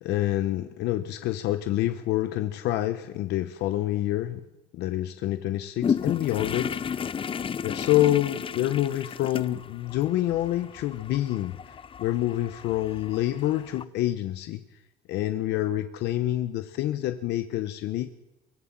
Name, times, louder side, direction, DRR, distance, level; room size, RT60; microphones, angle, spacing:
voice 1, 0.0-4.4 4.7-6.8 7.6-11.6 12.0-14.6 15.1-18.1, left 14 dB, 80° left, 9 dB, 1.0 m, -27 dB
sound 1, 5.8-13.8, left 7 dB, 30° left, 0.6 m, -34 dB
24.0 x 15.0 x 7.4 m, 0.96 s
cardioid pair, 110°, 17 cm